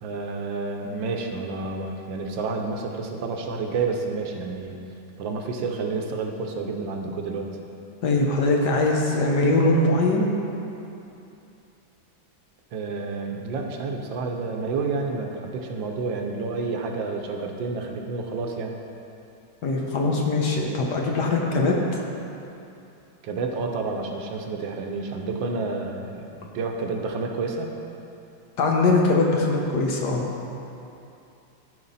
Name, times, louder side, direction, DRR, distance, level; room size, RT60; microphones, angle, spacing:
voice 1, 0.0-4.8 5.2-7.5 12.7-18.7 23.2-27.7, right 4 dB, 75° right, 2 dB, 1.5 m, -29 dB
voice 2, 8.0-10.3 19.6-21.7 28.6-30.3, left 2 dB, 60° left, -1 dB, 1.4 m, -21 dB
14.0 x 4.9 x 4.1 m, 2.8 s
omnidirectional pair, 2.1 m